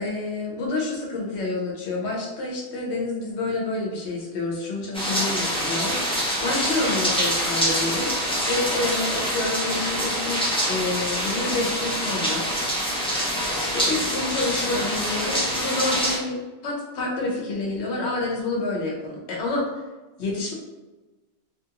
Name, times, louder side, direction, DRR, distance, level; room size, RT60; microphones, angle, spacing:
voice 1, 0.0-12.4 13.5-19.6 20.2-20.5, left 2 dB, 70° left, -2 dB, 1.0 m, -28 dB
sound 1, 4.9-16.2, equal, 5° left, 0.5 m, -25 dB
2.8 x 2.5 x 2.8 m, 1.2 s
omnidirectional pair, 1.2 m